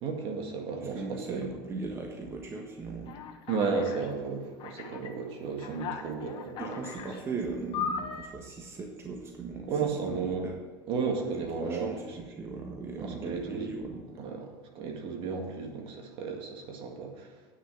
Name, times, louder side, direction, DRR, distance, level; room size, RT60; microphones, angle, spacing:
voice 1, 0.0-1.5 3.5-6.8 9.6-10.5 10.9-12.2 13.0-13.7 14.2-17.3, right 5 dB, 50° right, 3 dB, 1.9 m, -33 dB
voice 2, 0.9-3.2 6.6-10.6 11.6-14.0, right 3 dB, 20° right, 1 dB, 1.4 m, -38 dB
Alarm, 3.1-4.1 4.6-5.1 5.6-7.2 7.7-8.3, left 6 dB, 45° left, 1.3 m, -37 dB
9.6 x 6.5 x 7.8 m, 1.4 s
supercardioid pair, 125°, 12 cm